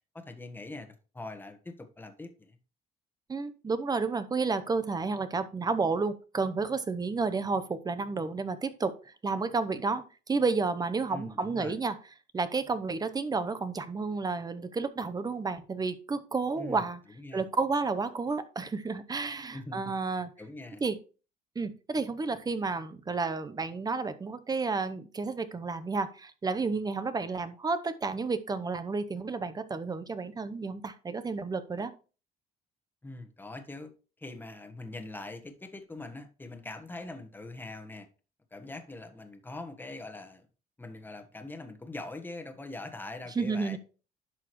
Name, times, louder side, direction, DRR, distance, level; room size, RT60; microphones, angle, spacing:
voice 1, 0.1-2.6 11.1-11.8 16.6-16.9 17.1-17.5 19.5-19.9 20.4-20.8 33.0-33.9 34.2-38.1 38.5-40.5 40.8-43.8, left 2 dB, 10° left, 1.3 m, -43 dB
voice 2, 3.3-11.9 12.3-17.0 17.3-20.3 20.8-21.0 21.5-31.9 43.4-43.8, right 4 dB, 25° right, 0.8 m, -31 dB
10.5 x 6.1 x 3.1 m
cardioid pair, 110°, 17 cm